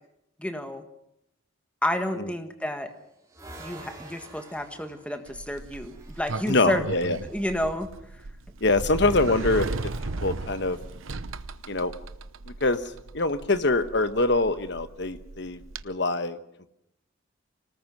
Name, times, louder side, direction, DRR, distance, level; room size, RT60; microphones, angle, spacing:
voice 1, 0.4-0.8 1.8-2.9 3.6-6.8 7.3-8.2, left 1 dB, 5° left, 7 dB, 1.6 m, -30 dB
sound 1, 2.6-6.5 9.5-10.9, right 1 dB, 15° right, 4.9 m, -48 dB
Sliding door, 5.3-15.8, right 3 dB, 85° right, 0.9 m, -36 dB
voice 2, 6.5-7.2 8.6-9.7 10.2-10.8 11.7-11.9 12.6-12.8 13.1-15.6 15.8-16.4, left 2 dB, 60° left, 11 dB, 1.2 m, -24 dB
25.5 x 19.0 x 6.2 m, 0.78 s
head